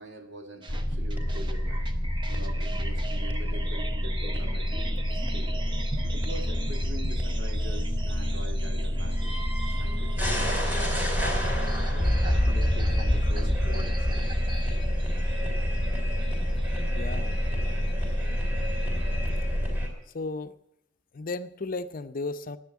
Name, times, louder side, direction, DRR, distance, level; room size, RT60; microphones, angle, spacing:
voice 1, 0.0-1.9 2.3-4.8 5.0-5.5 6.1-9.4 9.8-11.2 11.9-14.2 15.2-15.5 16.0-16.3, equal, 70° right, 4 dB, 2.2 m, -44 dB
sound 1, 0.6-19.4, right 2 dB, 25° right, 1.1 m, -42 dB
sound 2, 0.7-19.9, equal, 10° right, 3.7 m, -27 dB
voice 2, 16.9-17.4 20.1-20.5 21.1-22.6, left 3 dB, 50° left, 11 dB, 0.6 m, -34 dB
10.5 x 9.2 x 9.4 m, 0.76 s
head